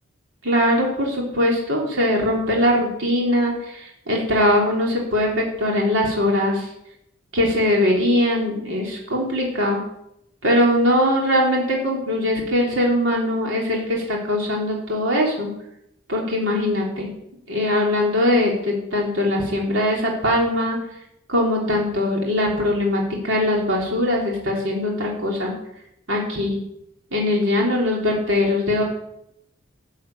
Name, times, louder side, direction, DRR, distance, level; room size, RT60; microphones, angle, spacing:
voice 1, 0.4-6.7 7.3-9.8 10.4-15.5 16.1-17.1 17.5-20.8 21.3-25.5 26.1-26.6 27.1-28.8, left 1 dB, 70° right, -2 dB, 3.5 m, -21 dB
13.5 x 7.8 x 8.5 m, 0.80 s
head